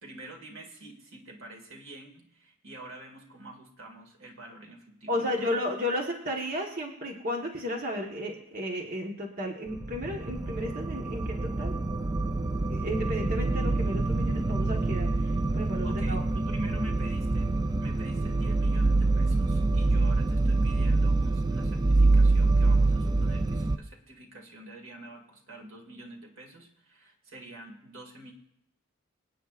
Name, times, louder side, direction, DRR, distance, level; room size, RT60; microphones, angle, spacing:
voice 1, 0.0-5.6 15.8-17.5 17.8-28.3, right 1 dB, 75° right, 2 dB, 2.2 m, -46 dB
voice 2, 5.1-11.7 12.7-16.2, left 1 dB, 45° right, 0 dB, 1.4 m, -33 dB
sound 1, 9.7-23.8, right 2 dB, 20° right, 0.3 m, -25 dB
26.5 x 9.3 x 2.5 m, 0.78 s
head